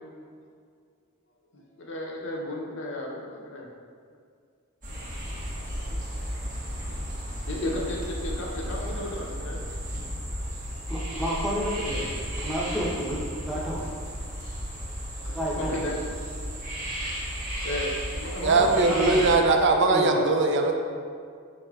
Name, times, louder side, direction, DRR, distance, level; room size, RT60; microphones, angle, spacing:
voice 1, 1.5-3.7 5.5-6.3 7.5-9.6 13.6-13.7 15.1-16.0 17.6-18.7, left 1 dB, 60° left, -1 dB, 0.6 m, -34 dB
sound 1, 4.8-19.4, equal, 40° right, 0.9 m, -34 dB
voice 2, 10.9-13.8 15.2-15.8 18.5-19.3 19.9-20.1, equal, ahead, -7 dB, 0.7 m, -31 dB
voice 3, 18.4-20.7, right 3 dB, 55° right, 3 dB, 0.3 m, -21 dB
4.8 x 4.1 x 2.3 m, 2.2 s
head